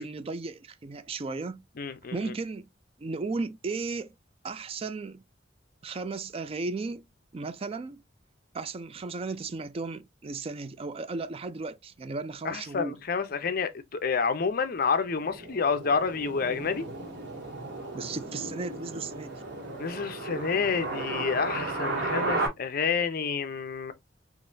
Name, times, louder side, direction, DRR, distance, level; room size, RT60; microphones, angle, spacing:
voice 1, 0.0-1.6 2.1-2.7 3.0-4.1 4.4-5.2 5.8-7.0 7.3-8.0 8.5-13.0 17.9-19.4, right 3 dB, 30° right, 0.3 m, -35 dB
voice 2, 1.8-2.3 12.4-16.9 19.8-23.9, left 5 dB, 50° left, 0.5 m, -29 dB
sound 1, 15.1-22.5, right 2 dB, 60° right, 1.8 m, -34 dB
3.8 x 2.9 x 2.5 m
head